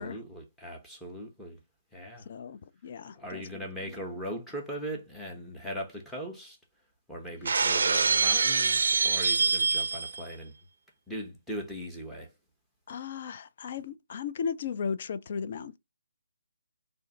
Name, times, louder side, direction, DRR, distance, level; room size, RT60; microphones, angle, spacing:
voice 1, 0.0-1.6 1.9-2.3 3.1-6.6 7.1-10.5 11.1-12.3, equal, 5° left, 0.7 m, -39 dB
voice 2, 2.3-3.4 3.8-4.0 12.9-15.8, left 6 dB, 40° left, 0.3 m, -36 dB
Shatter, 7.4-10.2, right 4 dB, 55° right, 0.4 m, -25 dB
2.4 x 2.4 x 3.9 m
figure-of-eight pair, 145°, 0 cm